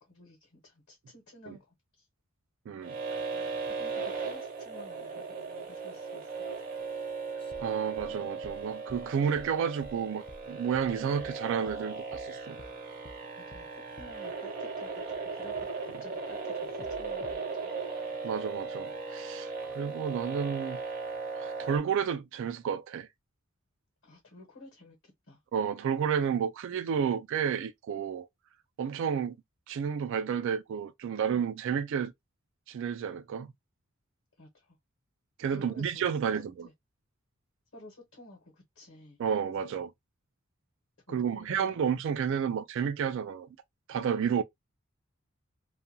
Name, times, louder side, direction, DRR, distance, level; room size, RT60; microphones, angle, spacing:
voice 1, 0.0-2.1 3.3-6.3 13.3-13.7 14.0-15.0 15.3-17.8 24.0-25.4 29.0-29.3 34.4-34.8 35.5-36.7 37.7-39.2 41.1-42.0 42.4-42.6, left 2 dB, 65° left, 1.0 m, -52 dB
voice 2, 2.7-3.0 3.4-3.5 7.6-12.6 18.2-20.8 21.3-23.1 25.5-28.3 28.8-29.4 29.7-32.1 32.7-33.5 35.4-36.7 39.2-39.9 41.1-43.5 43.9-44.4, right 7 dB, 60° right, 0.3 m, -31 dB
sound 1, 2.8-21.8, right 4 dB, 40° right, 0.7 m, -37 dB
sound 2, 7.4-11.4 11.7-11.8 12.1-12.3 12.6-12.7 13.1-13.2 13.5-13.7 14.0-14.2 16.8-17.4, left 2 dB, 25° left, 0.3 m, -51 dB
2.4 x 2.2 x 2.6 m
head